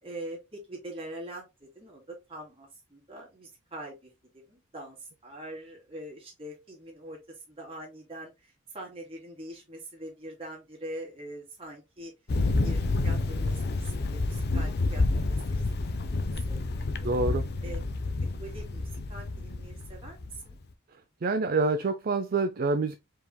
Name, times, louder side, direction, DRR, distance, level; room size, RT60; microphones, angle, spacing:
voice 1, 0.0-12.1 12.6-16.1 16.5-17.2 17.6-17.8 18.4-20.6, right 1 dB, 25° right, 2.2 m, -43 dB
Thunder, 12.3-20.5, left 2 dB, 50° left, 0.5 m, -29 dB
voice 2, 17.0-17.5 21.2-23.0, right 3 dB, 45° right, 0.4 m, -26 dB
4.7 x 3.6 x 2.3 m
head